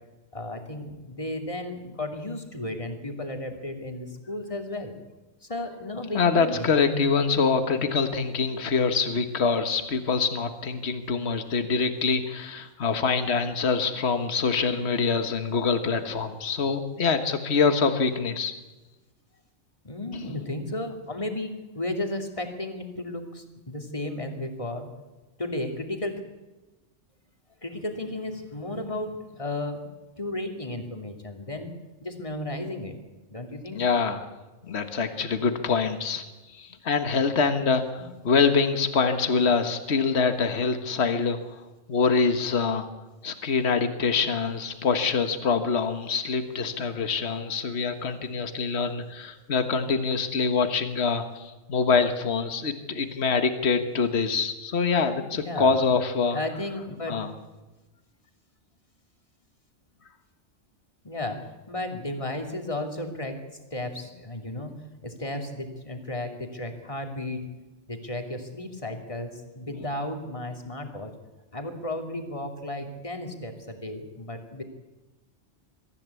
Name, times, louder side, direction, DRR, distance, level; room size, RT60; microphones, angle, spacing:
voice 1, 0.3-4.9 5.4-7.0 19.8-24.9 25.4-26.2 27.6-29.8 30.2-31.7 32.0-33.0 33.3-34.0 55.1-55.8 56.3-57.2 61.0-63.4 63.7-64.7 65.0-67.4 67.9-71.1 71.5-74.6, left 1 dB, 25° left, 4 dB, 2.8 m, -34 dB
voice 2, 6.1-18.5 20.2-20.3 33.7-34.3 34.7-36.2 36.5-41.4 41.9-42.9 43.2-56.4 57.1-57.3, left 5 dB, 65° left, 8 dB, 1.7 m, -25 dB
23.5 x 14.5 x 8.3 m, 1.1 s
omnidirectional pair, 1.2 m